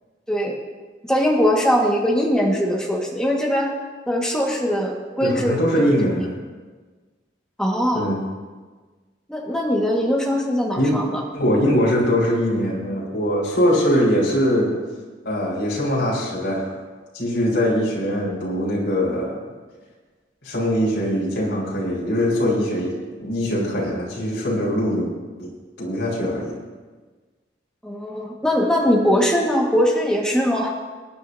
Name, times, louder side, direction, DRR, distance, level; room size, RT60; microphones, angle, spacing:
voice 1, 1.0-3.7 4.1-5.9 7.6-8.1 9.3-11.2 27.8-30.7, equal, 5° left, -2 dB, 1.7 m, -21 dB
voice 2, 5.2-6.3 7.9-8.2 10.8-11.0 11.3-14.7 15.2-16.7 17.1-19.4 20.4-25.1 25.4-25.5 25.8-26.6, equal, 75° left, -5 dB, 4.4 m, -22 dB
22.5 x 9.9 x 2.8 m, 1.4 s
head